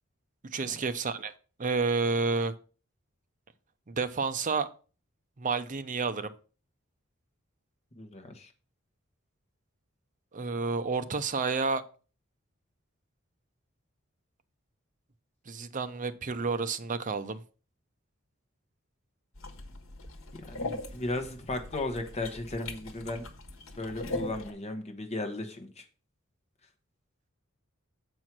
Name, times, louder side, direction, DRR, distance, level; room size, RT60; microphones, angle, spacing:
voice 1, 0.4-1.3 1.6-2.5 3.9-4.7 5.4-6.3 10.3-11.8 15.5-17.4, right 4 dB, 40° right, 10 dB, 0.6 m, -30 dB
voice 2, 8.0-8.5 20.3-23.2 23.8-25.8, left 2 dB, 30° left, 5 dB, 1.1 m, -36 dB
sound 1, 19.4-24.5, left 2 dB, 75° left, 1.3 m, -40 dB
7.5 x 4.6 x 5.9 m, 0.37 s
head